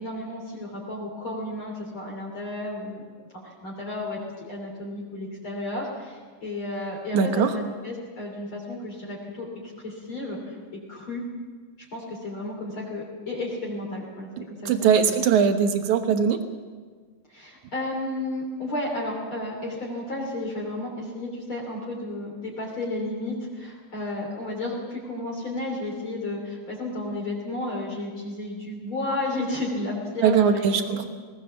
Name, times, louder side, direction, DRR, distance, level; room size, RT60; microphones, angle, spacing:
voice 1, 0.0-3.0 3.4-4.2 4.5-9.5 9.8-11.2 11.9-15.1 17.3-31.0, left 2 dB, 35° left, -2 dB, 3.6 m, -32 dB
voice 2, 7.1-7.5 14.7-16.4 30.2-31.1, right 6 dB, 60° right, 7 dB, 2.2 m, -20 dB
20.0 x 18.5 x 7.2 m, 1.5 s
omnidirectional pair, 4.5 m